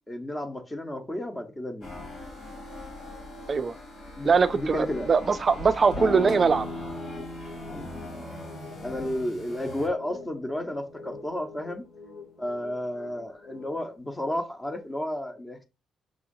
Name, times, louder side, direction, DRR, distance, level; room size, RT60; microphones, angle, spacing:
voice 1, 0.1-1.9 4.2-5.1 7.7-7.9 8.8-11.8 12.4-15.6, left 1 dB, 15° left, 1.0 m, -32 dB
sound 1, 1.8-9.9, left 2 dB, 65° left, 2.5 m, -42 dB
voice 2, 4.2-6.7, right 5 dB, 40° right, 0.3 m, -22 dB
sound 2, 5.6-14.0, left 3 dB, 85° left, 1.6 m, -46 dB
sound 3, 5.9-11.3, left 2 dB, 45° left, 1.5 m, -39 dB
6.1 x 2.8 x 2.7 m
cardioid pair, 90°, 0 cm